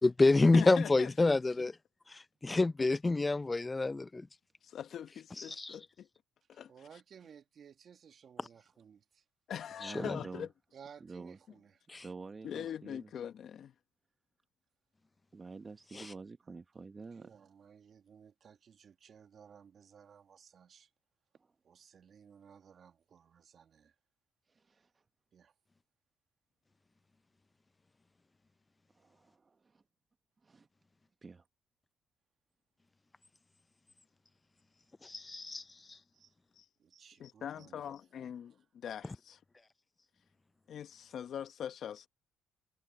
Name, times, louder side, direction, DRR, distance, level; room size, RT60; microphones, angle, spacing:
voice 1, 0.0-1.7 2.1-4.3 5.5-5.7 9.8-10.2 11.9-12.0 15.9-16.1 35.0-35.6, left 3 dB, 20° left, 0.6 m, -28 dB
voice 2, 0.5-1.4 2.5-2.9 4.6-6.1 6.5-6.7 9.5-10.5 12.4-13.7 35.9-36.0 36.6-36.7 37.2-39.4 40.7-42.1, left 9 dB, 60° left, 1.2 m, -42 dB
voice 3, 6.5-9.2 10.7-11.8 17.1-20.9 21.6-23.9 25.3-25.5 36.1-36.3 36.8-37.9 38.2-38.6, right 7 dB, 55° right, 1.8 m, -58 dB
voice 4, 9.8-10.5 11.0-11.4 12.0-13.1 15.3-17.5 24.5-24.9 28.9-29.8 30.4-30.7 31.2-31.4, right 4 dB, 30° right, 1.1 m, -48 dB
supercardioid pair, 75°, 0 cm